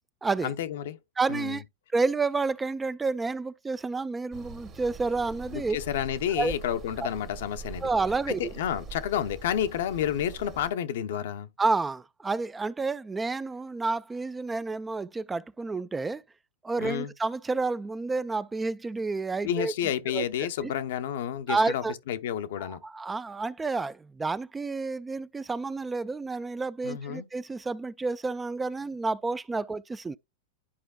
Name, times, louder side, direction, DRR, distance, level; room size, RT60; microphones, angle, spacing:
voice 1, 0.4-1.0 1.3-1.6 5.5-7.9 8.3-11.5 16.8-17.1 19.4-22.8 26.8-27.2, left 10 dB, 70° left, 0.7 m, -30 dB
voice 2, 1.2-1.6 1.9-5.8 6.4-6.5 7.0-7.1 7.8-8.5 11.6-16.2 16.6-19.7 20.1-20.2 20.6-20.7 21.5-21.9 22.6-30.2, right 3 dB, 15° right, 0.3 m, -30 dB
sound 1, 4.3-10.7, right 4 dB, 30° right, 1.2 m, -44 dB
11.5 x 4.6 x 2.2 m
hypercardioid pair, 120°, 0 cm